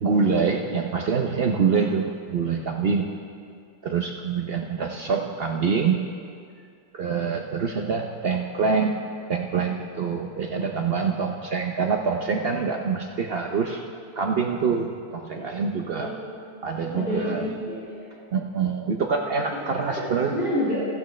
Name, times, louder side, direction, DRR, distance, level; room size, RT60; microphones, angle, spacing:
voice 1, 0.0-3.1 3.8-6.0 6.9-13.8 14.2-16.1 16.6-17.5 18.3-20.4, right 5 dB, 90° right, 2 dB, 0.5 m, -25 dB
voice 2, 16.0-16.4 16.9-18.1 19.8-20.9, equal, 30° right, -9 dB, 2.8 m, -29 dB
16.0 x 14.5 x 3.2 m, 2.3 s
omnidirectional pair, 1.9 m